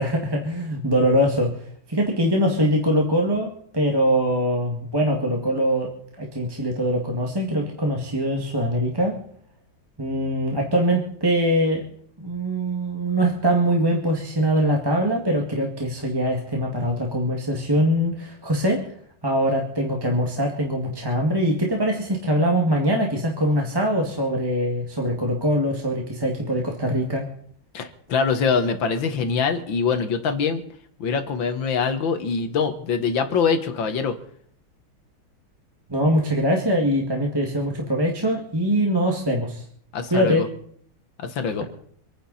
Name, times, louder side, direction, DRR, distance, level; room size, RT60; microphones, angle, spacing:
voice 1, 0.0-1.6 1.9-9.2 10.0-11.8 12.2-18.8 19.2-27.3 35.9-39.6 40.1-40.5, equal, 10° right, 0 dB, 1.8 m, -23 dB
voice 2, 27.7-30.6 31.0-34.2 39.9-40.5 41.2-41.6, left 5 dB, 65° left, 8 dB, 2.0 m, -24 dB
26.0 x 10.0 x 4.2 m, 0.62 s
omnidirectional pair, 2.3 m